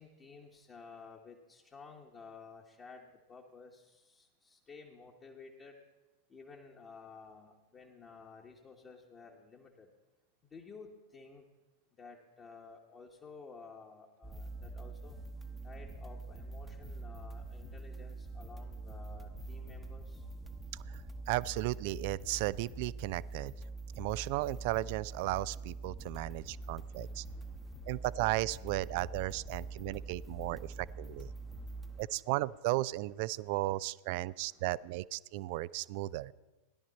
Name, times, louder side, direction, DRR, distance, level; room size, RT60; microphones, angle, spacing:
voice 1, 0.0-5.8 6.3-9.9 10.4-11.4 12.0-15.2 15.6-20.3 26.2-28.1 29.6-32.3 33.3-33.5 34.1-34.6, left 4 dB, 25° left, -1 dB, 1.2 m, -54 dB
sound 1, 14.2-32.1, right 2 dB, 5° right, 0.9 m, -45 dB
voice 2, 20.9-23.5 24.0-27.2 27.9-31.3 32.0-36.3, right 18 dB, 45° right, 21 dB, 0.3 m, -35 dB
17.0 x 11.5 x 4.1 m, 1.1 s
figure-of-eight pair, 90°, 0 cm